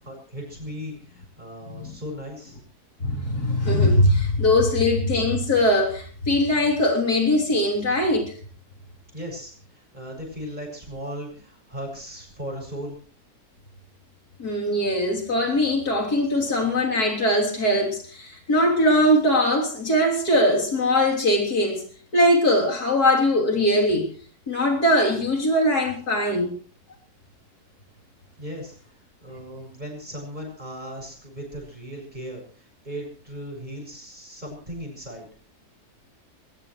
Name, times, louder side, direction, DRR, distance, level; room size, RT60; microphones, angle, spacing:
voice 1, 0.0-2.6 9.1-13.0 28.4-28.7 29.2-35.3, equal, 30° right, 1 dB, 7.1 m, -37 dB
voice 2, 1.7-2.0 3.0-8.3 14.4-21.8 22.1-24.1 24.5-26.5, left 1 dB, 85° left, 0 dB, 4.0 m, -21 dB
20.5 x 20.0 x 3.2 m, 0.43 s
omnidirectional pair, 1.6 m